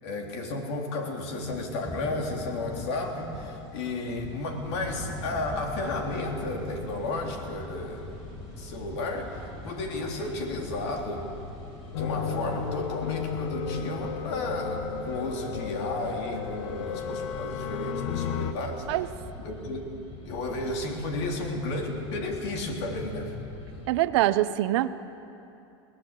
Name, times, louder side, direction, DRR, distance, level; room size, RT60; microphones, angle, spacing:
voice 1, 0.0-8.2 8.6-11.3 12.0-18.9 19.4-19.9 20.3-23.3, left 2 dB, 75° left, 2 dB, 3.6 m, -33 dB
sound 1, 1.4-17.4, equal, 5° left, 5.3 m, -47 dB
sound 2, 4.6-23.9, left 2 dB, 45° left, 4.9 m, -43 dB
sound 3, 11.9-18.5, left 6 dB, 90° left, 1.2 m, -33 dB
voice 2, 23.9-24.9, right 15 dB, 70° right, 13 dB, 0.8 m, -24 dB
21.0 x 18.0 x 8.2 m, 2.9 s
supercardioid pair, 125°, 15 cm